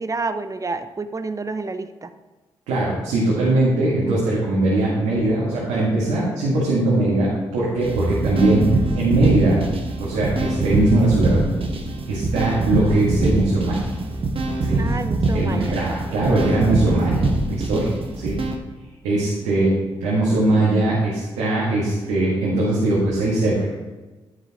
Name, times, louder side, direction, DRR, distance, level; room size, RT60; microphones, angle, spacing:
voice 1, 0.0-2.1 14.7-15.7, right 3 dB, 25° right, 11 dB, 0.7 m, -29 dB
voice 2, 2.7-8.7 8.9-9.6 10.0-11.4 12.1-13.8 14.6-14.9 15.3-18.4 19.0-19.7 20.0-23.7, right 2 dB, 85° right, -7 dB, 1.8 m, -20 dB
sound 1, 7.8-18.6, right 2 dB, 50° right, 1.3 m, -24 dB
10.0 x 7.4 x 3.0 m, 1.2 s
hypercardioid pair, 45°, 12 cm